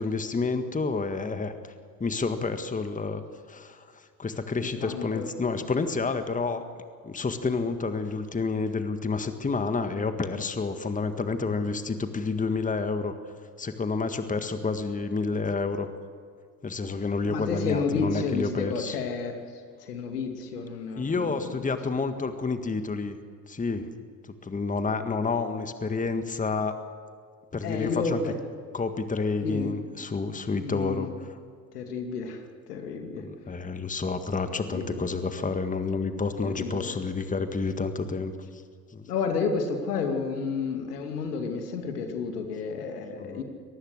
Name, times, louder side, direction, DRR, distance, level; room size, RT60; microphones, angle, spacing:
voice 1, 0.0-1.5 2.0-3.2 3.5-6.6 7.0-13.2 13.6-15.9 16.6-19.0 21.0-23.2 23.5-23.9 24.2-26.7 27.5-28.2 28.7-31.1 33.1-38.6 38.9-39.0 43.2-43.4, left 4 dB, 15° left, 9 dB, 1.7 m, -29 dB
voice 2, 4.6-5.3 17.3-19.4 19.8-21.8 27.6-28.3 29.4-29.7 30.6-31.1 31.7-32.4 32.7-33.2 34.5-35.1 36.4-37.0 39.1-43.4, left 5 dB, 75° left, 5 dB, 2.6 m, -31 dB
25.0 x 19.0 x 6.6 m, 2.1 s
figure-of-eight pair, 65°, 46 cm